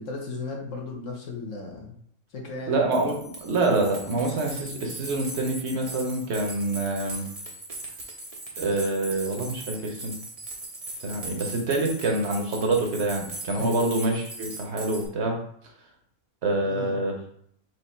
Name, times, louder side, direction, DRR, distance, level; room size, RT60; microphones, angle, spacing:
voice 1, 0.0-2.0 2.3-2.8 13.6-13.8 16.6-17.0, left 3 dB, 65° left, 0 dB, 1.4 m, -35 dB
voice 2, 2.7-7.3 8.6-10.1 11.0-15.4 16.4-17.1, right 2 dB, 55° right, 2 dB, 1.1 m, -26 dB
sound 1, 2.9-15.1, right 2 dB, 35° right, 0.6 m, -39 dB
4.7 x 2.7 x 4.2 m, 0.66 s
omnidirectional pair, 1.4 m